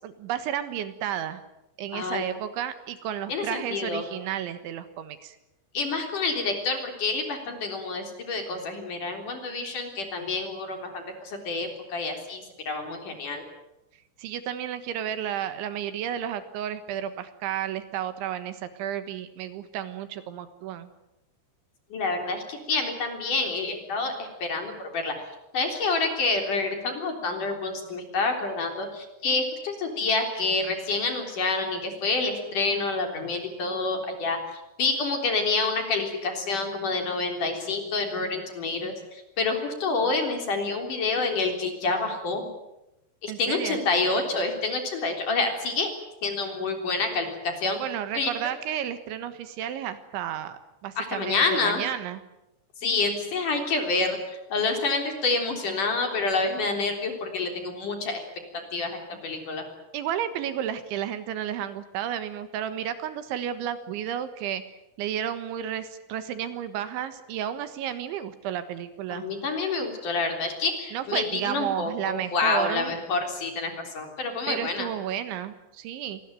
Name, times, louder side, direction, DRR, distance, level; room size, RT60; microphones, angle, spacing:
voice 1, 0.0-1.4 1.8-5.4 14.2-20.9 43.3-43.8 47.8-52.2 59.9-69.3 70.9-73.0 74.5-76.2, right 10 dB, 75° right, 11 dB, 3.7 m, -32 dB
voice 2, 1.9-2.2 3.3-4.0 5.7-13.4 21.9-25.1 25.5-34.4 34.8-42.5 43.2-45.9 46.2-47.8 48.1-48.3 51.0-51.8 52.8-58.2 58.7-58.9 59.2-59.6 69.1-74.9, left 3 dB, 45° left, 4 dB, 4.8 m, -28 dB
26.0 x 20.0 x 9.2 m, 0.91 s
omnidirectional pair, 5.5 m